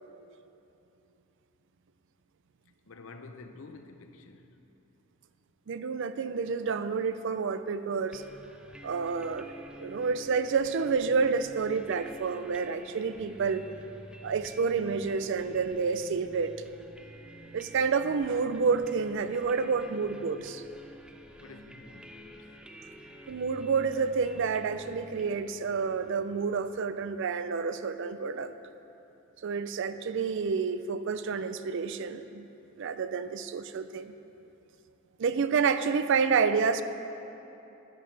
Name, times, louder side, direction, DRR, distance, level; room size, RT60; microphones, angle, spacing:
voice 1, 2.9-4.5 21.4-22.4, left 3 dB, 70° left, 0.7 m, -49 dB
voice 2, 5.7-8.2 8.8-9.5 9.8-13.6 14.2-16.6 17.5-20.6 23.3-28.6 29.4-32.4 32.8-34.1 35.2-36.8, right 5 dB, 60° right, 0.4 m, -29 dB
sound 1, 8.1-26.8, right 1 dB, 5° right, 0.5 m, -49 dB
12.0 x 10.5 x 3.3 m
head